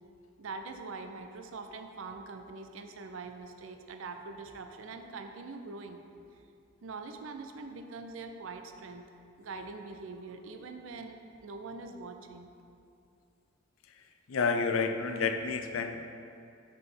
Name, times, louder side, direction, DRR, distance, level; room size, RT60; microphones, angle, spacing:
voice 1, 0.4-6.0 6.8-9.1 9.4-11.2 11.4-12.5, right 3 dB, 70° right, 6 dB, 0.5 m, -43 dB
voice 2, 14.3-16.1, left 4 dB, 80° left, 6 dB, 0.5 m, -30 dB
5.5 x 4.0 x 5.5 m, 2.5 s
head